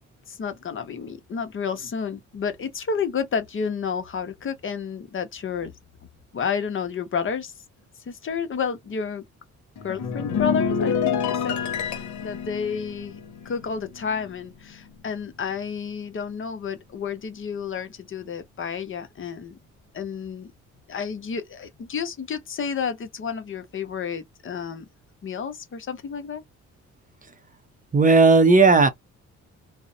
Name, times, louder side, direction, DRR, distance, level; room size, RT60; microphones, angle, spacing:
voice 1, 0.3-5.7 6.3-7.5 8.1-9.2 9.8-13.2 13.4-19.6 19.9-20.5 20.9-24.8 25.2-26.4, left 6 dB, 45° left, 0.7 m, -30 dB
sound 1, 9.8-14.4 14.7-15.0, left 7 dB, 70° left, 0.9 m, -28 dB
voice 2, 27.9-28.9, right 3 dB, 25° right, 0.5 m, -14 dB
2.5 x 2.0 x 2.6 m
cardioid pair, 90°, 30 cm